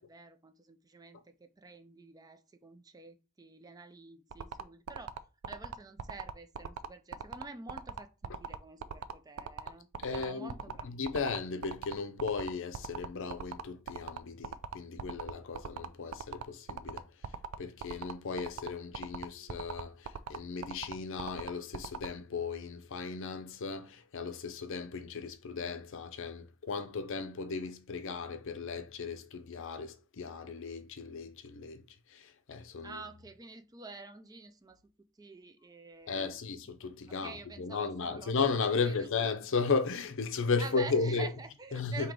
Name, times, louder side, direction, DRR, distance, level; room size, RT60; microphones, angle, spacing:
voice 1, 0.0-5.2 5.5-11.2 32.8-34.8 35.2-36.4 37.1-38.3 38.8-39.1 40.6-42.1, right 4 dB, 15° right, 0.4 m, -48 dB
sound 1, 4.3-22.1, right 6 dB, 75° right, 0.4 m, -40 dB
voice 2, 10.0-10.6 10.8-17.0 17.6-31.8 32.1-33.0 36.1-41.3 41.7-42.1, left 4 dB, 60° left, 0.5 m, -35 dB
3.8 x 2.9 x 4.6 m
head